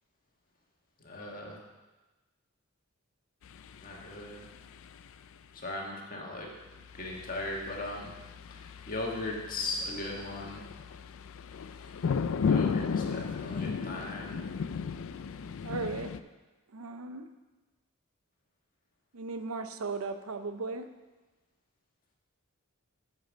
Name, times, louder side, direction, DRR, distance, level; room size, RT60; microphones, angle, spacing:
voice 1, 1.0-1.6 3.8-4.5 5.5-8.2 8.5-10.7 11.8-11.9 12.5-14.5, left 2 dB, 40° left, -1 dB, 1.6 m, -38 dB
sound 1, 3.4-5.3 6.7-16.2, left 6 dB, 65° left, 0.4 m, -35 dB
voice 2, 15.6-16.1 16.7-17.3 19.1-20.9, right 3 dB, 70° right, 8 dB, 0.6 m, -36 dB
9.0 x 5.4 x 6.4 m, 1.2 s
head